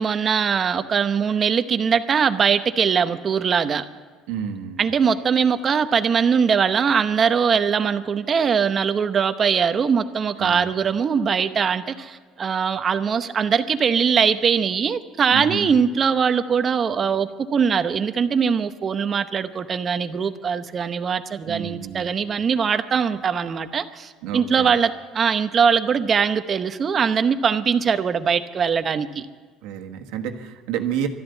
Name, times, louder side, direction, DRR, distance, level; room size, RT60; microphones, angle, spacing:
voice 1, 0.0-3.9 4.8-29.3, right 6 dB, 30° right, 11 dB, 0.8 m, -21 dB
voice 2, 4.3-4.9 10.4-10.7 15.3-15.7 21.4-22.1 24.2-24.7 29.6-31.1, right 8 dB, 90° right, 4 dB, 1.4 m, -30 dB
13.0 x 11.5 x 8.1 m, 1.5 s
cardioid pair, 140°, 0 cm